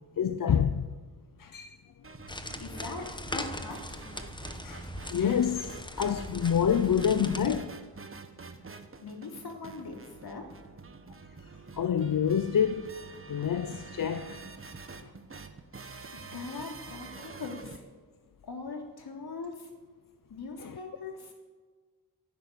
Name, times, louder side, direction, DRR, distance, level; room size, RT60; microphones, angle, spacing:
voice 1, 0.2-0.9 1.4-1.8 4.6-7.7 11.7-12.9 13.3-14.4 15.0-15.1 20.6-20.8, left 8 dB, 55° left, 0.8 m, -27 dB
sound 1, 2.0-17.8, right 4 dB, 35° right, 1.3 m, -47 dB
voice 2, 2.3-4.0 8.7-10.5 15.8-15.9 16.3-17.8 18.4-19.7 20.3-21.3, left 4 dB, 75° left, 3.2 m, -41 dB
sound 2, 2.3-7.6, left 1 dB, 10° left, 1.2 m, -40 dB
12.0 x 11.0 x 9.7 m
cardioid pair, 80°, 39 cm